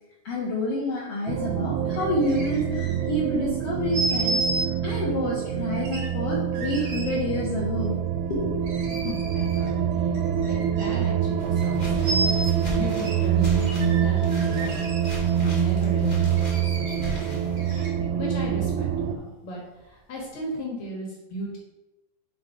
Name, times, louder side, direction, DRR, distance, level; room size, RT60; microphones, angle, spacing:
voice 1, 0.2-4.4 4.8-8.0 8.3-8.6, left 1 dB, 75° left, -5 dB, 1.4 m, -28 dB
sound 1, 1.3-19.2, right 9 dB, 85° right, 2.5 m, -26 dB
sound 2, 1.9-3.2 3.9-4.7 5.8-7.2 8.6-9.8 10.1-11.1 11.5-11.7 12.0-12.5 13.0-13.2 13.6-15.3 16.4-18.2 18.8-18.9, right 2 dB, 55° right, 1.7 m, -32 dB
voice 2, 8.8-17.9 18.2-19.6 19.9-21.6, left 1 dB, 55° left, -2 dB, 2.4 m, -36 dB
sound 3, 11.4-17.8, left 2 dB, 20° left, 1.7 m, -38 dB
5.7 x 5.1 x 4.9 m, 1.0 s
omnidirectional pair, 4.4 m